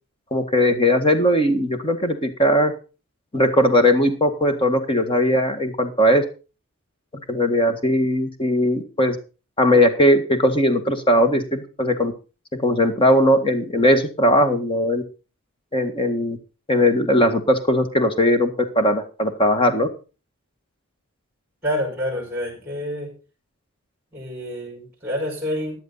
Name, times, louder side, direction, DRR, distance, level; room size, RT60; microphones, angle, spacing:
voice 1, 0.3-2.7 3.3-6.2 7.3-9.2 9.6-12.1 12.5-15.0 15.7-16.4 16.7-19.9, equal, 25° left, 7 dB, 1.7 m, -19 dB
voice 2, 21.6-23.1 24.1-25.8, equal, 10° right, -1 dB, 5.8 m, -28 dB
14.5 x 10.5 x 4.0 m, 0.33 s
head